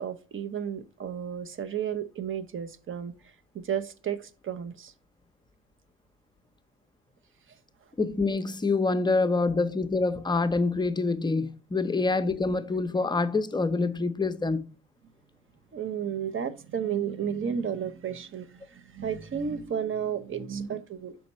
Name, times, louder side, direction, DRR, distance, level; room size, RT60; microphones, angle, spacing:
voice 1, 0.0-3.1 3.5-4.9 15.7-21.2, right 8 dB, 45° right, 0.7 m, -32 dB
voice 2, 8.0-14.6, left 3 dB, 15° left, 0.6 m, -26 dB
5.8 x 4.3 x 4.1 m
cardioid pair, 90°, 30 cm